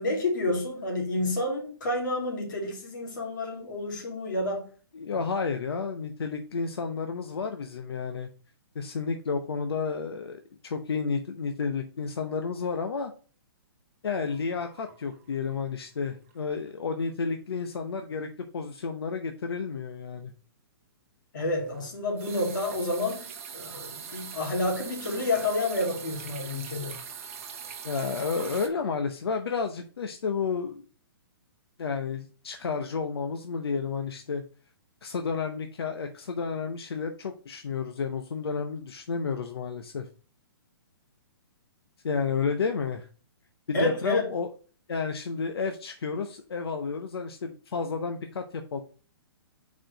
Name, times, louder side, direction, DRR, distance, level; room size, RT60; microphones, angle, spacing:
voice 1, 0.0-4.7 21.3-27.0 43.7-44.3, left 2 dB, 55° left, 2.5 m, -29 dB
voice 2, 4.9-8.3 8.7-13.1 14.0-20.3 27.8-30.8 31.8-34.4 35.0-40.1 42.0-43.0 43.7-44.5 44.9-48.8, left 5 dB, 85° left, 0.9 m, -31 dB
sound 1, 14.1-15.7 16.0-16.3 16.7-16.8 21.4-28.7, right 7 dB, 35° right, 1.0 m, -42 dB
4.8 x 4.6 x 5.1 m
hypercardioid pair, 175°, 13 cm